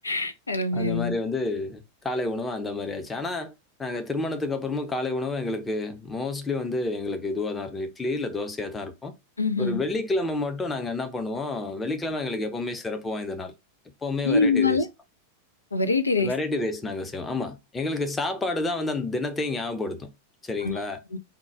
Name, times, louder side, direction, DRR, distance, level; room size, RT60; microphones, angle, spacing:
voice 1, 0.0-1.1 9.4-9.8 14.2-14.9 15.7-16.3 20.6-20.7 21.1-21.2, left 3 dB, 80° left, 0.4 m, -24 dB
voice 2, 0.7-3.5 3.8-9.1 9.6-13.5 14.0-14.9 16.2-20.1 20.4-21.0, left 2 dB, 15° left, 0.7 m, -29 dB
3.7 x 2.3 x 4.5 m
figure-of-eight pair, 90°, 0 cm